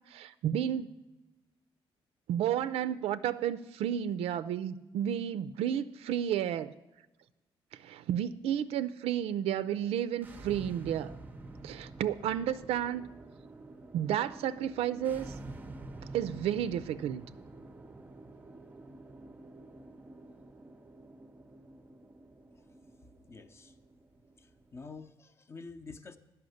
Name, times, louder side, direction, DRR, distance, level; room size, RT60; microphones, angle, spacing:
voice 1, 0.1-0.9 2.3-6.7 7.7-11.1 11.6-13.1 13.9-15.3 16.1-17.2, right 10 dB, 90° right, 12 dB, 0.4 m, -32 dB
sound 1, 10.1-25.1, right 2 dB, 20° right, 0.5 m, -49 dB
voice 2, 23.3-23.7 24.4-26.2, left 4 dB, 25° left, 11 dB, 0.6 m, -48 dB
10.5 x 5.6 x 7.8 m, 1.1 s
cardioid pair, 140°, 10 cm